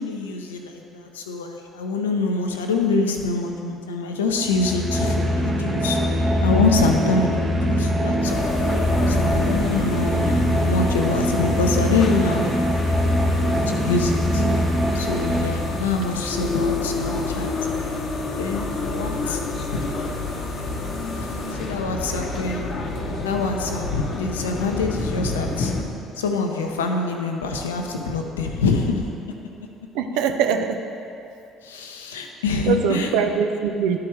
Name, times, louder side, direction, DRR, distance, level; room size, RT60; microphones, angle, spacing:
voice 1, 0.0-6.0 6.4-8.4 9.1-12.7 13.7-14.4 14.9-17.9 18.4-19.4 19.7-19.8 21.1-22.6 23.2-25.7 26.2-29.0 30.1-30.2 31.6-33.1, left 4 dB, 80° left, 3 dB, 0.6 m, -25 dB
sound 1, 4.4-16.1, equal, 25° right, 1.2 m, -22 dB
sound 2, 8.2-25.8, left 3 dB, 50° left, 0.8 m, -29 dB
voice 2, 29.9-30.8 32.7-34.0, right 7 dB, 65° right, 6 dB, 0.5 m, -22 dB
11.5 x 4.7 x 3.1 m, 2.5 s
hypercardioid pair, 55°, 0 cm